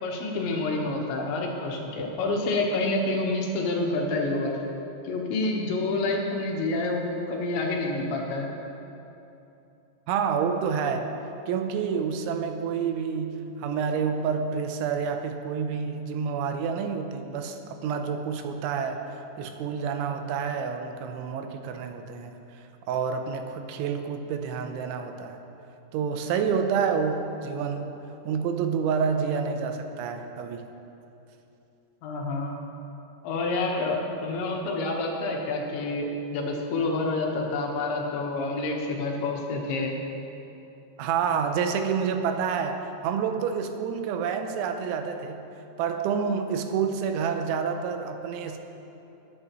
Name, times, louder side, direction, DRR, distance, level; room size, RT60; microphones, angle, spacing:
voice 1, 0.0-4.6 5.0-8.5 32.0-32.6 33.2-39.9, left 2 dB, 75° left, -1 dB, 3.5 m, -28 dB
voice 2, 10.1-11.1 11.5-19.0 19.4-22.4 22.9-25.4 25.9-27.9 28.2-30.7 41.0-45.4 45.8-48.6, right 6 dB, 85° right, 6 dB, 3.1 m, -28 dB
21.0 x 9.9 x 3.1 m, 2.9 s
omnidirectional pair, 5.3 m